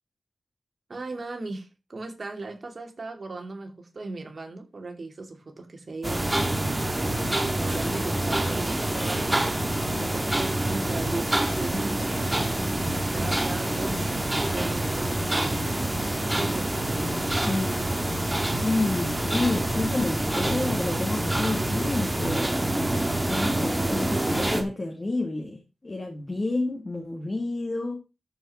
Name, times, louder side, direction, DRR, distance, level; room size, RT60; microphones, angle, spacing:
voice 1, 0.9-12.2 12.9-15.6 16.3-17.3, right 3 dB, 50° right, 2.8 m, -38 dB
sound 1, 6.0-24.6, right 1 dB, 15° right, 2.4 m, -26 dB
voice 2, 17.4-18.0 18.5-28.0, left 2 dB, 35° left, 2.3 m, -30 dB
13.5 x 5.5 x 4.5 m
wide cardioid pair, 75°, 0 cm